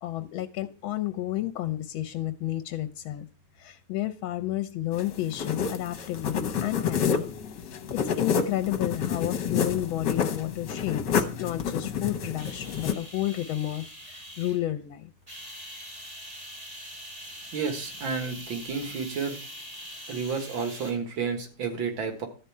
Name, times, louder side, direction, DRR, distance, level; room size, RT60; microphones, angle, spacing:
voice 1, 0.0-3.3 3.6-7.3 7.6-15.1, left 14 dB, 80° left, 10 dB, 1.4 m, -31 dB
sound 1, 4.9-12.9, left 6 dB, 65° left, 1.6 m, -29 dB
sound 2, 12.4-14.7 15.3-20.9, equal, 20° right, 2.4 m, -43 dB
voice 2, 17.5-19.4 20.1-22.3, right 5 dB, 70° right, 5 dB, 2.3 m, -31 dB
12.5 x 4.4 x 8.5 m, 0.39 s
omnidirectional pair, 2.2 m